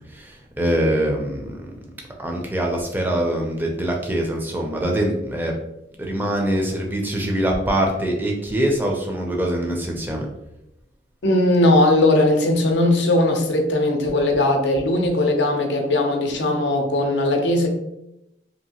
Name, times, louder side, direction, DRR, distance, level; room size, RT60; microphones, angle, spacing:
voice 1, 0.1-1.6 2.2-5.5 6.0-10.3, right 1 dB, 10° right, 0 dB, 0.4 m, -23 dB
voice 2, 11.2-17.7, left 1 dB, 80° left, 3 dB, 0.5 m, -19 dB
2.8 x 2.6 x 2.8 m, 0.86 s
head